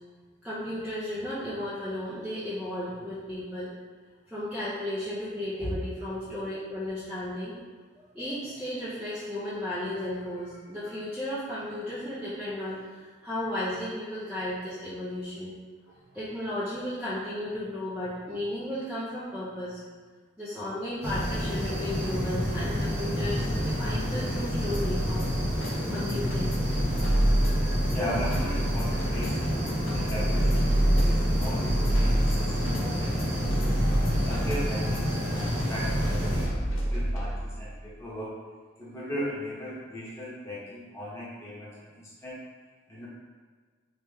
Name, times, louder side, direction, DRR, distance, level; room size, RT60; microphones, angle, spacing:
voice 1, 0.4-3.7 4.3-7.6 8.0-15.5 15.9-19.8 20.4-25.3 25.6-26.6, left 1 dB, 5° right, -11 dB, 0.6 m, -34 dB
sound 1, 21.0-36.5, equal, 60° right, 1.4 m, -29 dB
sound 2, 24.7-37.7, right 1 dB, 90° left, 0.7 m, -28 dB
voice 2, 27.9-33.7 34.2-38.4 38.8-42.4 42.9-43.1, equal, 15° left, -9 dB, 1.2 m, -38 dB
3.3 x 3.0 x 3.4 m, 1.5 s
head